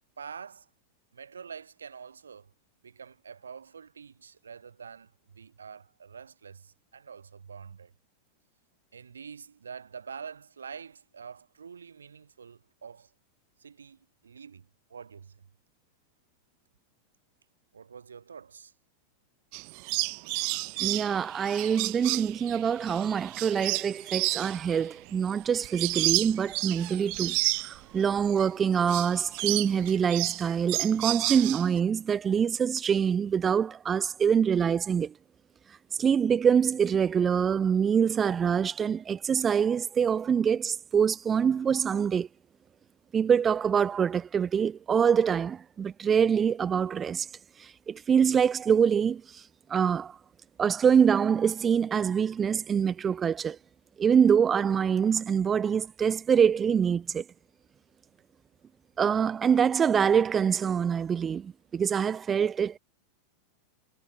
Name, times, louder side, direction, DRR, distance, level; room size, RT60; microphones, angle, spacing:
voice 1, 0.2-0.7 1.1-2.5 2.8-7.9 8.9-13.1 13.6-15.5 17.7-18.7, right 6 dB, 70° right, 5.9 m, -46 dB
sound 1, 19.5-28.5 28.8-31.8, right 40 dB or more, 45° right, 0.4 m, -31 dB
voice 2, 20.8-27.4 27.6-35.1 36.0-42.3 43.1-47.3 47.6-49.4 49.7-50.2 50.6-53.6 54.0-57.2 59.0-62.8, right 7 dB, 20° right, 0.8 m, -25 dB
figure-of-eight pair, 90°, 0 cm